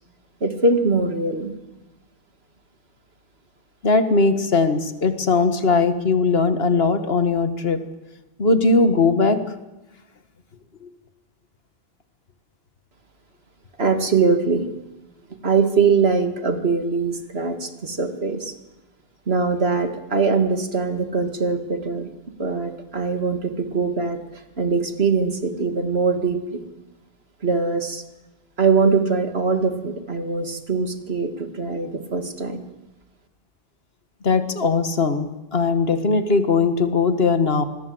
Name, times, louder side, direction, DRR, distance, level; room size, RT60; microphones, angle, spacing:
voice 1, 0.4-1.5 13.8-14.7 15.4-18.5 19.3-22.1 22.4-26.6 27.4-28.0 28.6-32.6, right 4 dB, 80° right, 7 dB, 2.5 m, -22 dB
voice 2, 3.8-7.8 8.4-9.4 10.8-10.9 34.2-37.6, left 4 dB, 70° left, 9 dB, 1.9 m, -19 dB
26.0 x 20.5 x 7.9 m, 1.0 s
omnidirectional pair, 1.0 m